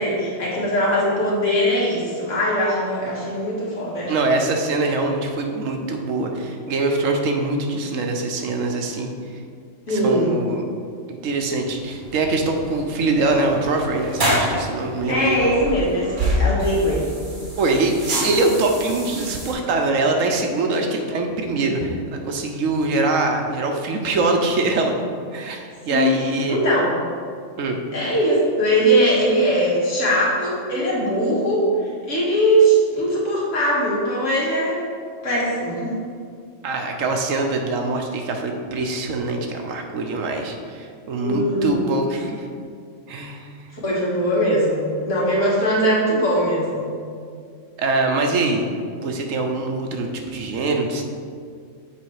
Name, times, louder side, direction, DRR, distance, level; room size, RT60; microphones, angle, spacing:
voice 1, 0.0-4.1 9.9-10.4 15.1-17.1 25.9-26.1 26.5-26.9 27.9-34.8 35.2-35.9 41.2-41.7 43.7-46.9, equal, 75° left, -6 dB, 2.1 m, -20 dB
voice 2, 4.1-9.1 9.9-10.6 11.1-15.4 17.6-25.0 25.3-26.6 27.6-27.8 36.6-42.5 43.1-43.5 47.8-48.6 49.0-51.0, right 3 dB, 85° right, 3 dB, 1.2 m, -23 dB
sound 1, 11.3-19.5, equal, 40° right, 1.5 m, -27 dB
7.2 x 4.3 x 4.8 m, 2.2 s
omnidirectional pair, 1.3 m